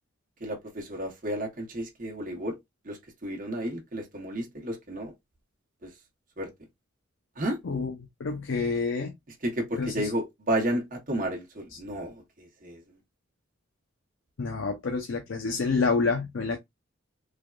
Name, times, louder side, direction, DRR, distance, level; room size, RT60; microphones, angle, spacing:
voice 1, 0.4-2.5 2.8-5.1 5.8-5.9 6.4-6.5 7.4-7.6 9.4-12.8, right 1 dB, 40° right, 0.9 m, -32 dB
voice 2, 8.2-9.1 9.7-10.1 11.7-11.8 14.4-16.6, left 4 dB, 75° left, 0.5 m, -28 dB
3.3 x 2.1 x 2.3 m
head